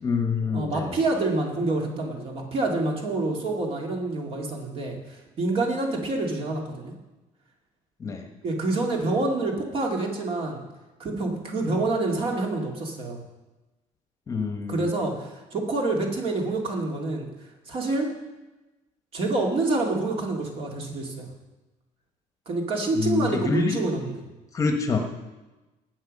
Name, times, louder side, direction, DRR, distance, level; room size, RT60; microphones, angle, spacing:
voice 1, 0.0-1.0 8.0-8.3 14.3-14.9 23.0-23.8 24.5-25.0, left 4 dB, 25° left, 4 dB, 1.2 m, -26 dB
voice 2, 0.5-6.9 8.4-10.6 11.0-13.2 14.7-17.3 17.7-18.1 19.1-21.3 22.5-24.2, right 2 dB, 40° right, 1 dB, 2.5 m, -27 dB
19.0 x 8.0 x 5.4 m, 1.1 s
cardioid pair, 170°, 14 cm